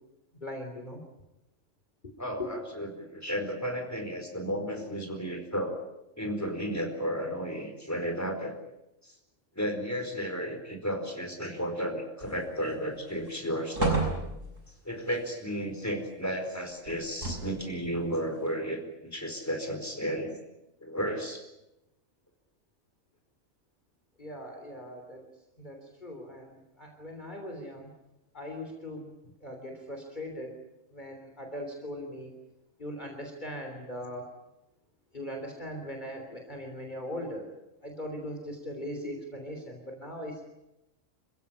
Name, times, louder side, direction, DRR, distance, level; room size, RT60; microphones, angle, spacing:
voice 1, 0.4-1.0 2.0-2.1 2.4-2.5 24.2-25.3 25.6-27.9 28.3-29.1 29.4-30.6 30.9-32.3 32.8-34.4 35.1-37.5 37.8-40.4, left 1 dB, 35° left, 3 dB, 3.5 m, -40 dB
voice 2, 2.2-5.8 6.2-8.6 9.0-9.1 9.6-14.1 14.8-20.4 20.8-21.4, equal, 10° left, 4 dB, 4.6 m, -33 dB
sound 1, 12.2-12.7 13.1-13.3 13.7-14.8 16.9-17.7 18.5-18.6, right 3 dB, 75° right, 6.4 m, -32 dB
27.5 x 16.0 x 9.9 m, 0.92 s
omnidirectional pair, 1.3 m